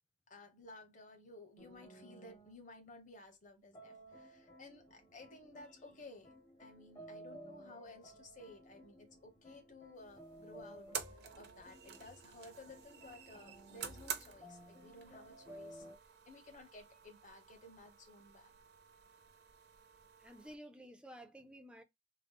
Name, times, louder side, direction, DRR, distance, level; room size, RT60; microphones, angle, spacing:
voice 1, 0.3-6.3 6.6-15.9 16.3-18.5, left 2 dB, 40° left, 1.1 m, -56 dB
sound 1, 1.6-2.6 3.7-16.0, right 1 dB, 25° left, 0.8 m, -56 dB
sound 2, 9.9-20.6, right 8 dB, 55° right, 0.6 m, -50 dB
voice 2, 20.2-21.8, equal, 5° right, 0.4 m, -53 dB
3.7 x 2.0 x 3.5 m
head